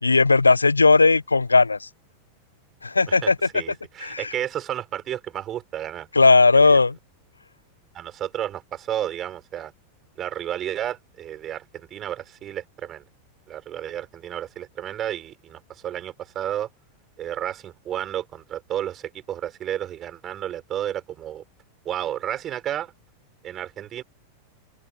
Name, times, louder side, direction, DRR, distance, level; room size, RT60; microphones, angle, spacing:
voice 1, 0.0-1.9 2.8-3.4 4.0-4.3 6.1-7.0, left 3 dB, 80° left, 0.7 m, -17 dB
voice 2, 3.1-6.1 6.5-6.8 7.9-9.7 10.2-13.0 13.5-16.7 17.2-21.4 21.8-22.9 23.4-24.0, right 11 dB, 30° right, 6.2 m, -32 dB
figure-of-eight pair, 90°, 0 cm